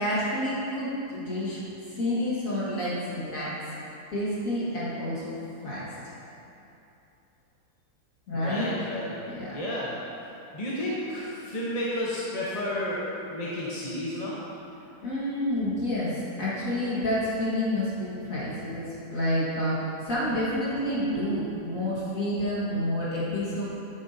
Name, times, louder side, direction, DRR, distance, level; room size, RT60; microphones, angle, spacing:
voice 1, 0.0-1.6 1.9-3.6 4.1-5.4 5.6-5.9 8.3-8.7 9.2-9.6 15.0-23.6, left 1 dB, 55° left, -9 dB, 2.1 m, -29 dB
voice 2, 8.4-9.1 9.5-9.9 10.5-14.4, left 1 dB, 30° left, -7 dB, 0.9 m, -31 dB
10.5 x 8.4 x 2.7 m, 2.9 s
omnidirectional pair, 1.7 m